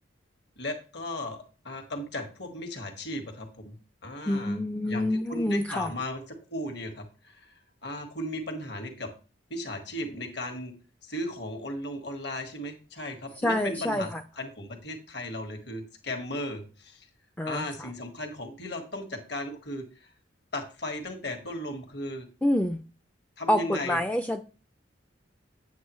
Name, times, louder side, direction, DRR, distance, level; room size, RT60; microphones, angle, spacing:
voice 1, 0.6-3.7 4.0-4.6 4.9-7.5 7.8-9.1 9.5-10.7 11.0-14.1 14.4-17.1 17.4-20.1 20.5-22.3 23.4-24.0, left 1 dB, 55° left, 4 dB, 1.7 m, -36 dB
voice 2, 4.3-5.9 13.4-14.2 17.4-17.9 22.4-22.8 23.5-24.4, left 1 dB, 5° left, 6 dB, 0.3 m, -27 dB
8.6 x 8.4 x 3.1 m, 0.36 s
head